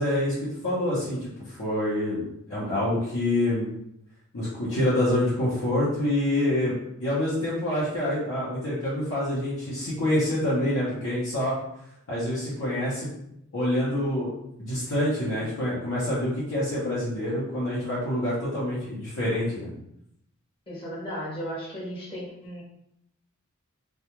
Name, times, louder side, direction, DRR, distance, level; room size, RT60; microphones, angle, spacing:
voice 1, 0.0-3.7 4.3-11.6 12.1-13.1 13.5-19.7, left 1 dB, 75° left, -9 dB, 0.8 m, -27 dB
voice 2, 20.7-22.6, equal, 25° left, -7 dB, 0.8 m, -35 dB
2.3 x 2.3 x 2.9 m, 0.77 s
head